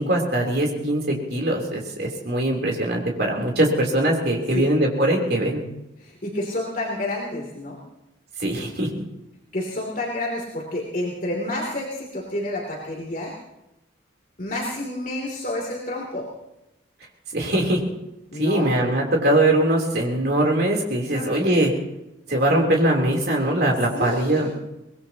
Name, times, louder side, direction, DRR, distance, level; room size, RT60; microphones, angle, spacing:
voice 1, 0.0-5.6 8.4-8.9 17.3-17.8 18.3-21.7 22.3-24.5, right 1 dB, 55° right, 0 dB, 3.5 m, -21 dB
voice 2, 6.0-7.8 9.5-13.3 14.4-16.3 18.3-18.7 21.1-21.4 23.9-24.5, left 1 dB, 45° left, -2 dB, 3.0 m, -29 dB
24.0 x 20.0 x 3.0 m, 0.92 s
head